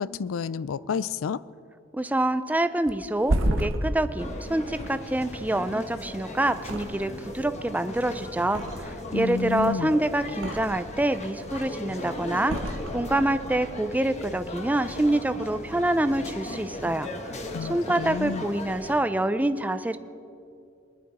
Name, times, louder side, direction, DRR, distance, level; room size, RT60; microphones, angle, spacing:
voice 1, 0.0-1.4 9.1-10.0 17.5-18.4, left 5 dB, 75° left, 18 dB, 0.4 m, -30 dB
voice 2, 1.9-12.6 12.9-17.1 17.6-20.0, right 1 dB, 10° right, 11 dB, 0.4 m, -26 dB
Thump thud, 2.9-6.1 6.6-7.4 7.6-9.1 9.4-11.0 11.4-11.9 12.4-13.4 13.8-14.0, right 1 dB, 70° right, 1.1 m, -31 dB
sound 1, 4.2-19.0, left 1 dB, 35° left, 1.3 m, -38 dB
22.0 x 11.0 x 4.2 m, 2.5 s
head